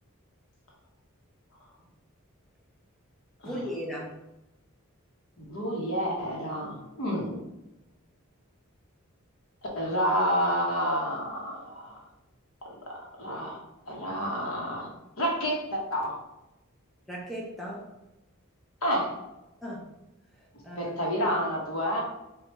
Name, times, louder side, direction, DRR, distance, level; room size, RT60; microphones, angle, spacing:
voice 1, 3.4-4.2 17.1-17.9 19.6-19.8 20.4-20.9, equal, ahead, -4 dB, 0.8 m, -37 dB
voice 2, 5.5-7.4 9.7-12.0 12.9-13.6 13.9-14.9 15.2-16.1 18.8-19.1 20.8-22.0, equal, 75° left, -2 dB, 1.2 m, -29 dB
4.8 x 2.5 x 3.1 m, 0.95 s
head